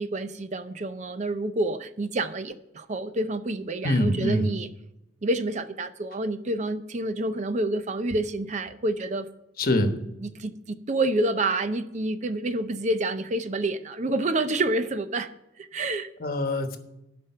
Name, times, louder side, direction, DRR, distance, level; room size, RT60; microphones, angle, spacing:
voice 1, 0.0-4.7 5.2-9.3 10.4-10.5 10.9-15.3 15.6-16.1, right 2 dB, 40° right, 11 dB, 0.5 m, -28 dB
voice 2, 3.8-4.5 9.6-9.9 16.2-16.8, left 1 dB, 55° left, 7 dB, 1.1 m, -24 dB
11.5 x 5.2 x 6.6 m, 0.87 s
head